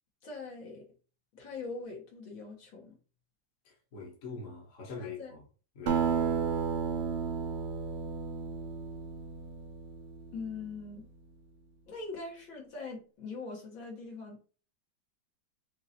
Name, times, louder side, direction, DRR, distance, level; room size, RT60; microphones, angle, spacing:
voice 1, 0.2-0.8 1.3-2.9 5.0-5.4 10.3-11.1 11.9-14.5, left 4 dB, 85° left, 2.5 m, -42 dB
voice 2, 3.6-5.4 5.7-6.1, left 4 dB, 45° left, 1.3 m, -43 dB
Acoustic guitar, 5.9-10.7, right 6 dB, 85° right, 0.5 m, -33 dB
6.0 x 2.8 x 2.8 m
omnidirectional pair, 2.1 m